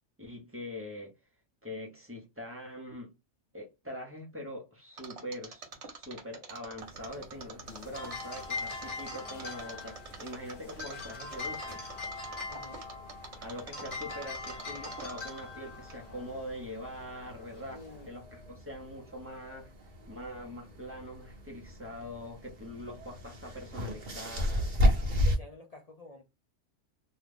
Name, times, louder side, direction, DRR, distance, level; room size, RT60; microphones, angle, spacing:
voice 1, 0.2-1.1 1.6-3.1 3.5-11.8 13.4-19.7 20.1-24.7, left 1 dB, 15° right, 0.6 m, -43 dB
Mechanisms, 5.0-15.6 15.9-16.0, right 5 dB, 65° right, 1.2 m, -46 dB
sound 1, 6.8-25.4, left 1 dB, 45° right, 1.0 m, -36 dB
sound 2, 7.7-18.1, left 3 dB, 45° left, 1.1 m, -42 dB
voice 2, 12.5-12.8 17.7-18.1 25.0-26.2, left 2 dB, 60° left, 0.4 m, -50 dB
2.8 x 2.3 x 3.4 m
omnidirectional pair, 1.3 m